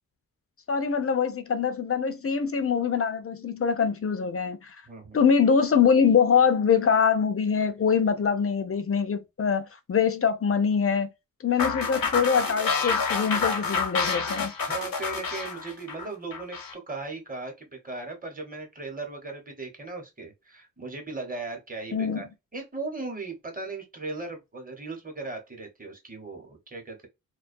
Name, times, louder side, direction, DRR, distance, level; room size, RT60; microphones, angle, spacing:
voice 1, 0.7-4.8 5.1-11.1 11.4-14.5 21.9-22.2, left 6 dB, 40° left, 0.4 m, -24 dB
voice 2, 4.9-5.2 13.4-13.7 14.7-22.3 22.5-27.1, right 3 dB, 25° right, 0.9 m, -37 dB
sound 1, 11.6-16.7, left 5 dB, 80° left, 0.8 m, -28 dB
2.2 x 2.2 x 2.5 m
wide cardioid pair, 120°, 35 cm